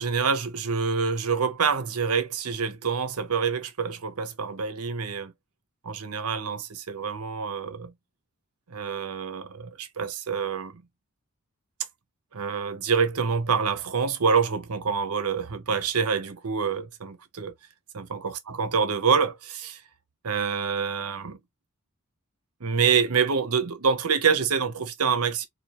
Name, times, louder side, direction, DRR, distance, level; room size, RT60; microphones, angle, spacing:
voice 1, 0.0-5.3 5.8-7.9 8.7-10.8 12.3-17.5 17.9-19.8 20.2-21.4 22.6-25.5, right 6 dB, 85° right, 0.8 m, -26 dB
4.3 x 2.3 x 3.0 m
head